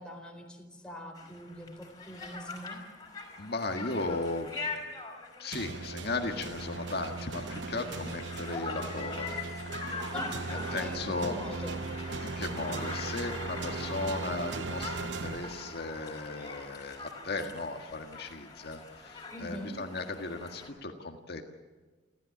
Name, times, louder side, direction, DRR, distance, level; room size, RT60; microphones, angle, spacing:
voice 1, 0.0-2.8 10.1-12.2 19.3-19.7, equal, 5° left, 2 dB, 4.3 m, -43 dB
Conversation, 1.2-20.7, left 3 dB, 20° left, 5.0 m, -43 dB
voice 2, 3.4-4.6 5.4-9.3 10.5-11.6 12.2-21.4, left 2 dB, 60° left, 4 dB, 1.8 m, -36 dB
sound 1, 5.5-16.1, right 4 dB, 75° right, 0.9 m, -38 dB
29.5 x 14.0 x 8.6 m, 1.3 s
head